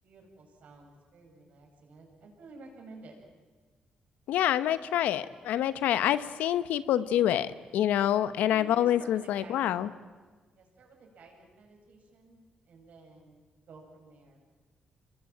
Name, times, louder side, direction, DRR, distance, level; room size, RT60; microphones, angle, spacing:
voice 1, 0.0-3.2 8.5-9.8 10.5-14.4, right 3 dB, 70° right, 1 dB, 7.9 m, -52 dB
voice 2, 4.3-9.9, left 11 dB, 90° left, 14 dB, 1.0 m, -27 dB
27.0 x 21.0 x 9.1 m, 1.4 s
cardioid pair, 75°, 3 cm